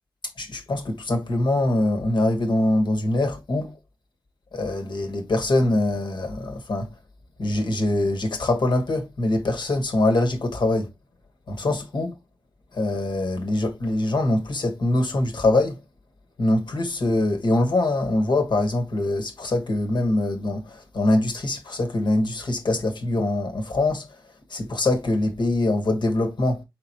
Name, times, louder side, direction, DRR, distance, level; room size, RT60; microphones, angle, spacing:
voice 1, 0.4-3.8 4.5-6.9 7.4-10.9 11.5-12.1 12.7-15.8 16.4-24.1 24.5-26.6, left 2 dB, 70° left, 1.3 m, -23 dB
4.7 x 3.9 x 2.7 m
cardioid pair, 45°, 8 cm